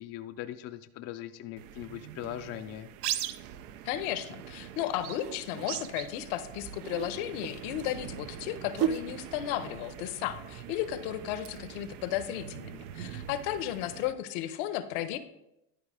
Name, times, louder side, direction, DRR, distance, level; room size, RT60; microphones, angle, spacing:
voice 1, 0.0-2.9, left 12 dB, 35° left, 8 dB, 0.4 m, -40 dB
sound 1, 1.6-14.1, right 11 dB, 85° right, 0.8 m, -42 dB
voice 2, 3.8-15.2, left 12 dB, 70° left, 12 dB, 0.9 m, -34 dB
sound 2, 5.2-5.7 6.7-11.6 11.9-12.0, right 9 dB, 50° right, 0.6 m, -36 dB
11.5 x 4.6 x 4.8 m, 0.86 s
supercardioid pair, 135°, 45 cm